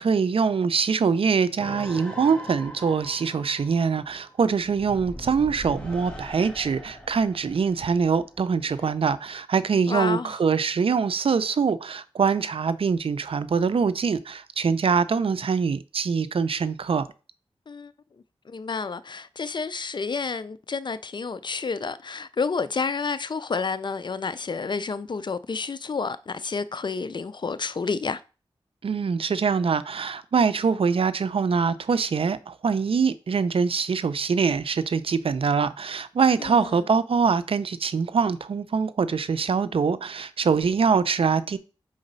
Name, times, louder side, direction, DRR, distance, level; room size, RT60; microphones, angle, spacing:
voice 1, 0.0-17.1 28.8-41.6, right 5 dB, 65° right, 0.5 m, -24 dB
sound 1, 1.6-8.9, equal, 10° left, 1.6 m, -41 dB
voice 2, 9.9-10.3 17.7-17.9 18.5-28.2 36.4-36.8, left 4 dB, 50° left, 0.5 m, -30 dB
5.0 x 3.9 x 5.4 m
cardioid pair, 55°, 10 cm